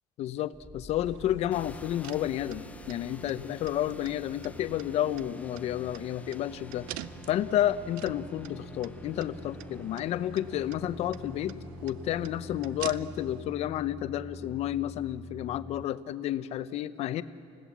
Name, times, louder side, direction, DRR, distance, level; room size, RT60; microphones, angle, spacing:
voice 1, 0.2-6.9 7.3-11.5 11.8-17.2, left 12 dB, 50° left, 14 dB, 0.7 m, -31 dB
sound 1, 0.5-10.5 10.8-11.5, left 1 dB, 10° right, 2.2 m, -54 dB
sound 2, 1.0-13.4, right 15 dB, 90° right, 0.6 m, -47 dB
sound 3, 1.5-15.8, left 2 dB, 10° left, 0.5 m, -46 dB
29.5 x 16.5 x 7.3 m, 2.5 s
cardioid pair, 155°, 14 cm